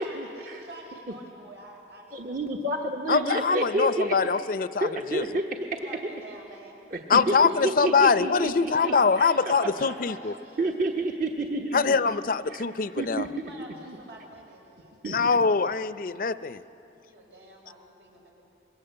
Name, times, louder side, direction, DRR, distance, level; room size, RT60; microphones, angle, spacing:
voice 1, 0.0-2.7 5.7-6.8 7.4-8.0 8.6-10.8 13.3-15.0 17.0-18.3, right 1 dB, 85° right, -1 dB, 5.6 m, -47 dB
voice 2, 2.1-4.2 4.8-5.8 6.9-7.3 7.6-9.7 10.6-12.1 13.0-13.5 13.9-14.0 15.0-15.2, right 2 dB, 50° right, 1 dB, 1.2 m, -29 dB
voice 3, 3.1-5.2 7.1-10.3 11.7-13.3 15.1-16.6, left 5 dB, 50° left, 13 dB, 0.5 m, -23 dB
26.0 x 22.5 x 7.8 m, 2.9 s
head